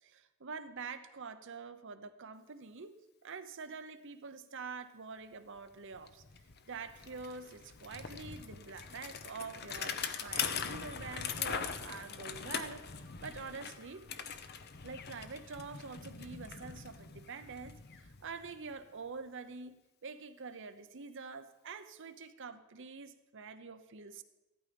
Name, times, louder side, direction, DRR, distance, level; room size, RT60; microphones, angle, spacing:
voice 1, 0.1-2.9 3.2-6.2 6.7-12.9 13.2-14.1 14.8-17.7 18.2-19.8 20.0-24.2, right 4 dB, 60° right, 9 dB, 0.9 m, -46 dB
Bicycle, 5.6-5.7 5.9-18.8, left 6 dB, 50° left, 0.9 m, -42 dB
15.0 x 12.0 x 5.3 m, 1.0 s
head